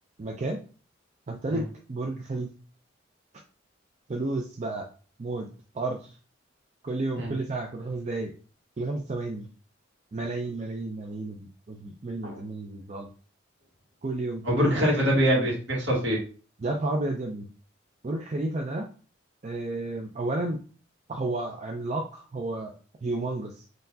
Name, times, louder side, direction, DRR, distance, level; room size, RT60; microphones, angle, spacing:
voice 1, 0.2-0.6 1.3-2.5 4.1-4.9 5.2-5.5 5.7-6.2 6.8-8.3 8.8-9.5 10.1-13.1 14.0-14.9 16.6-17.5 18.0-18.9 19.4-20.6 21.1-22.8 23.0-23.6, right 2 dB, 35° right, 2 dB, 0.4 m, -32 dB
voice 2, 14.4-16.2, equal, 65° right, -3 dB, 1.9 m, -24 dB
4.2 x 3.1 x 2.7 m, 0.38 s
head